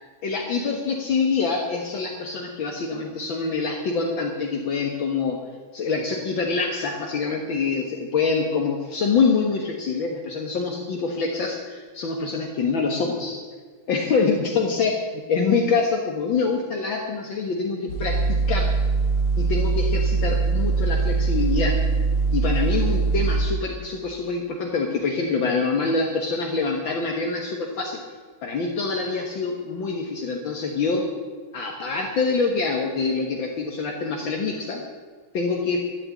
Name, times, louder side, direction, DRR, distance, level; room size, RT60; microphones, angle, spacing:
voice 1, 0.2-5.4 5.7-13.4 13.9-18.7 19.4-21.8 22.3-28.0 28.4-31.1 31.5-34.8 35.3-35.9, left 4 dB, 65° left, 0 dB, 2.1 m, -25 dB
sound 1, 17.9-23.4, right 4 dB, 85° left, 2.8 m, -22 dB
12.0 x 12.0 x 8.5 m, 1.5 s
omnidirectional pair, 2.3 m